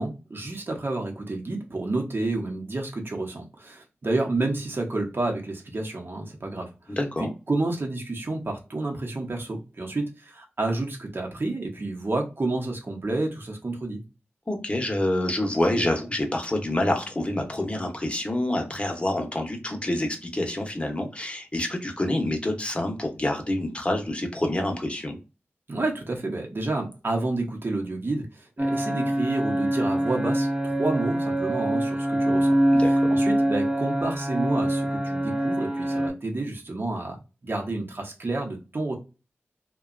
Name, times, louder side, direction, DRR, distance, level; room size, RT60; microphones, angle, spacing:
voice 1, 0.0-6.7 7.2-14.0 25.7-32.6 32.8-37.2 37.4-39.0, right 2 dB, 55° right, 0.8 m, -30 dB
voice 2, 6.9-7.3 14.5-25.2 32.7-33.1, left 1 dB, 25° left, 0.8 m, -27 dB
sound 1, 28.6-36.1, right 1 dB, 15° right, 0.7 m, -24 dB
2.7 x 2.2 x 2.5 m
cardioid pair, 50°, 5 cm